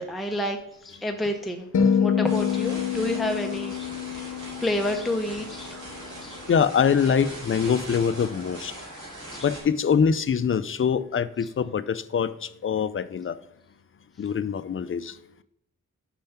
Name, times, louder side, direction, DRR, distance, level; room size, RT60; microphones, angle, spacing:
voice 1, 0.0-5.8 6.0-6.4 9.3-9.5 11.4-11.5, left 1 dB, ahead, 0.7 m, -30 dB
sound 1, 1.7-6.1, left 7 dB, 65° left, 0.9 m, -27 dB
sound 2, 2.2-9.6, right 1 dB, 65° right, 3.8 m, -40 dB
voice 2, 6.5-8.7 9.4-13.4 14.2-15.2, left 7 dB, 40° left, 0.4 m, -24 dB
7.0 x 5.6 x 5.6 m
wide cardioid pair, 95°, 33 cm